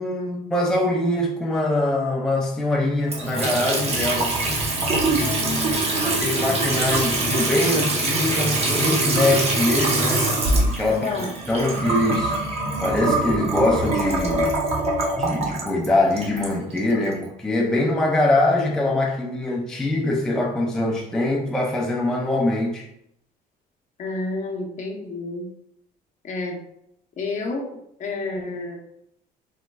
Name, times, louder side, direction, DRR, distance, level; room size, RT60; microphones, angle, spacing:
voice 1, 0.0-4.3 6.0-10.3 10.8-11.1 11.5-12.4 12.8-14.6 15.2-22.9, left 2 dB, 5° left, 0.4 m, -23 dB
Water tap faucet / Sink (filling or washing) / Trickle dribble, 3.1-17.2, right 2 dB, 40° right, 0.8 m, -23 dB
voice 2, 5.2-6.5 10.9-11.3 24.0-25.5 26.2-26.6 27.2-27.7 28.0-28.8, left 3 dB, 45° left, 0.7 m, -30 dB
4.0 x 2.2 x 2.2 m
cardioid pair, 110°, 17 cm